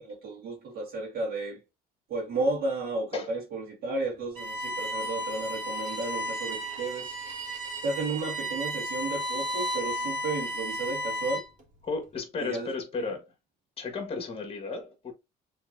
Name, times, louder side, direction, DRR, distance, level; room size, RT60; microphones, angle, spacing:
voice 1, 0.0-1.6 2.1-7.1 7.8-11.4 12.4-12.7, right 2 dB, 65° right, 1.9 m, -33 dB
Bowed string instrument, 4.4-11.6, equal, 45° right, 2.1 m, -33 dB
voice 2, 11.8-13.2 13.8-15.1, left 4 dB, 35° left, 1.5 m, -34 dB
5.8 x 3.4 x 2.6 m
cardioid pair, 110°, 17 cm